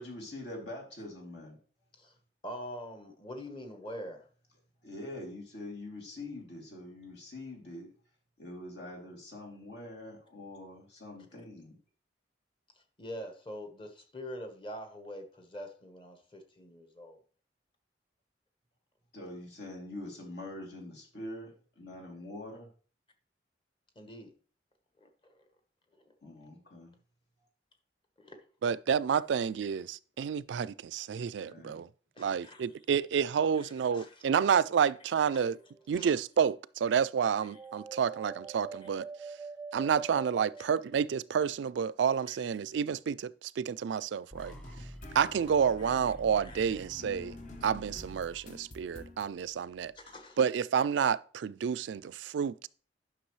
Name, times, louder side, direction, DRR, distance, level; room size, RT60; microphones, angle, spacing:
voice 1, 0.0-1.6 4.8-7.9 8.4-11.8 19.1-22.7 26.2-26.9 31.4-31.8, left 1 dB, 70° left, 2.8 m, -44 dB
voice 2, 2.4-4.3 13.0-17.2 23.9-24.3 25.0-25.5 28.2-28.4 32.1-32.6 33.5-34.3 35.3-35.5 35.9-36.1 37.4-37.6 40.6-40.7 42.3-42.4 45.8-46.0 46.4-46.7 49.9-50.4, equal, 30° left, 1.2 m, -45 dB
voice 3, 28.6-31.9 32.2-35.6 35.9-39.1 39.7-44.5 45.1-47.4 47.6-49.9 50.4-52.7, right 7 dB, 80° right, 0.3 m, -29 dB
eerie-pad, 35.4-36.1 37.5-41.4, right 4 dB, 15° right, 0.5 m, -45 dB
sound 1, 44.3-50.2, equal, 5° left, 0.8 m, -50 dB
sound 2, 44.4-49.3, left 2 dB, 45° left, 0.9 m, -50 dB
10.0 x 6.0 x 3.1 m
head